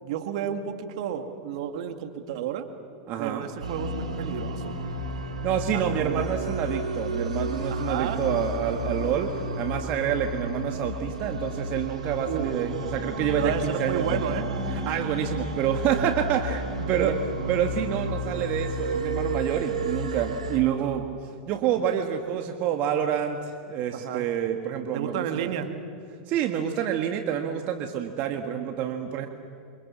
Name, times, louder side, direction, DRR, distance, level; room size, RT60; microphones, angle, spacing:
voice 1, 0.0-2.7 3.2-4.8 5.7-6.3 7.7-8.2 12.3-12.5 13.3-14.5 17.0-17.2 23.9-24.3 24.9-25.7, right 9 dB, 65° right, 6 dB, 2.5 m, -31 dB
voice 2, 3.1-3.5 5.4-14.4 14.7-17.2 17.5-21.1 21.5-25.5 26.3-29.3, right 9 dB, 50° right, 5 dB, 1.9 m, -28 dB
sound 1, 3.6-20.6, right 1 dB, 85° right, 3.2 m, -32 dB
28.0 x 25.0 x 7.4 m, 2.4 s
hypercardioid pair, 95°, 4 cm